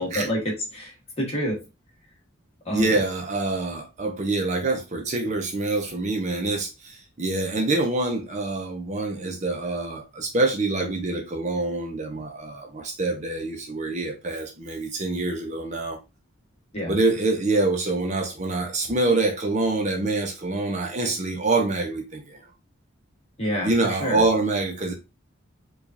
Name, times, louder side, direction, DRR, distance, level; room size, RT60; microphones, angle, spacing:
voice 1, 0.0-1.6 2.6-2.9 16.7-17.0 23.4-24.2, equal, 30° left, 1.3 m, -28 dB
voice 2, 2.7-16.0 16.9-22.4 23.6-24.9, right 2 dB, 35° right, 0.6 m, -26 dB
4.9 x 2.4 x 2.6 m
head